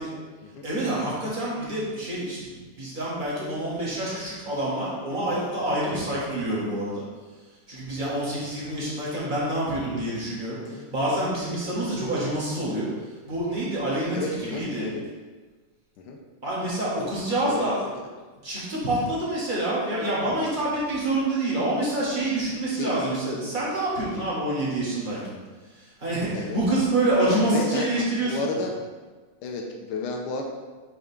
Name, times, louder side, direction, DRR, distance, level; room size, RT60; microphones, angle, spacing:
voice 1, 0.0-0.6 8.4-8.6 10.6-10.9 14.1-15.0 16.0-16.2 17.4-17.7 22.8-23.0 26.3-26.6 27.5-28.7 29.4-30.4, left 3 dB, 85° left, 1 dB, 1.6 m, -32 dB
voice 2, 0.6-7.1 7.7-14.8 16.4-17.8 18.4-25.3 25.6-28.6, right 1 dB, 25° right, -8 dB, 1.8 m, -27 dB
8.1 x 3.7 x 3.6 m, 1.3 s
omnidirectional pair, 2.4 m